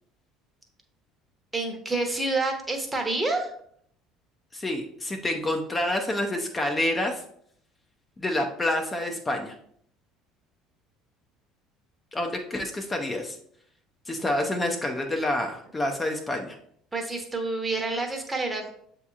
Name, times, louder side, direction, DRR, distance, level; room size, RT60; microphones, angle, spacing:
voice 1, 1.5-3.5 16.9-18.7, right 2 dB, 20° right, 3 dB, 1.0 m, -28 dB
voice 2, 4.5-7.2 8.2-9.5 12.1-13.4 14.1-16.6, left 1 dB, 20° left, 2 dB, 0.6 m, -28 dB
6.7 x 2.9 x 2.4 m, 0.65 s
hypercardioid pair, 70°, 0 cm